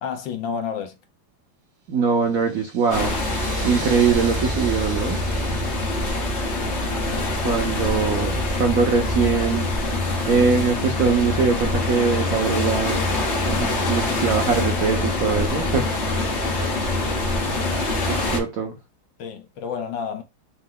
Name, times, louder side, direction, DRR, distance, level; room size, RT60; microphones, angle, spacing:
voice 1, 0.0-0.9 19.2-20.2, left 6 dB, 70° left, 1.4 m, -30 dB
voice 2, 1.9-3.1 3.6-5.2 7.4-9.7 10.3-13.1 13.4-16.2 18.1-18.8, right 5 dB, 85° right, 0.7 m, -22 dB
sound 1, 2.1-8.3, right 5 dB, 60° right, 1.4 m, -42 dB
sound 2, 2.9-18.4, left 2 dB, 40° left, 1.1 m, -24 dB
4.4 x 2.2 x 3.6 m
omnidirectional pair, 2.4 m